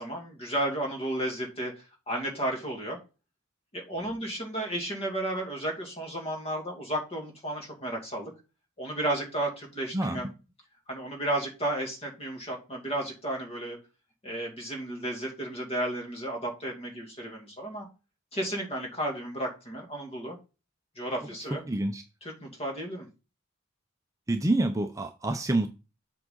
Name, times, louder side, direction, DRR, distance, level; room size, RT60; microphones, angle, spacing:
voice 1, 0.0-3.0 3.7-8.3 8.8-10.3 10.9-13.8 14.2-17.9 18.3-20.4 21.0-21.6 22.2-23.1, right 1 dB, 30° left, 2.4 m, -33 dB
voice 2, 21.7-22.0 24.3-25.7, right 2 dB, 15° right, 0.6 m, -27 dB
7.7 x 4.8 x 3.9 m
head